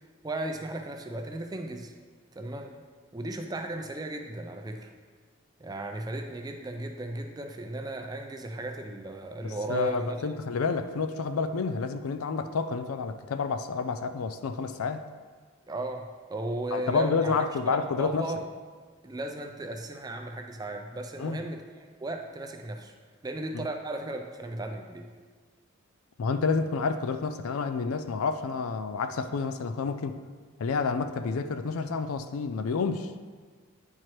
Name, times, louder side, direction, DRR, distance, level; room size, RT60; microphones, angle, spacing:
voice 1, 0.2-1.9 2.4-2.8 3.1-4.9 5.6-10.3 15.7-17.3 17.7-18.5 19.0-23.0 23.2-25.1, right 1 dB, 20° right, 4 dB, 0.4 m, -36 dB
voice 2, 9.4-15.0 16.7-18.3 21.2-21.4 23.5-23.7 26.2-30.2 30.6-33.1, left 4 dB, 80° left, 9 dB, 0.4 m, -29 dB
9.6 x 4.6 x 3.0 m, 1.5 s
head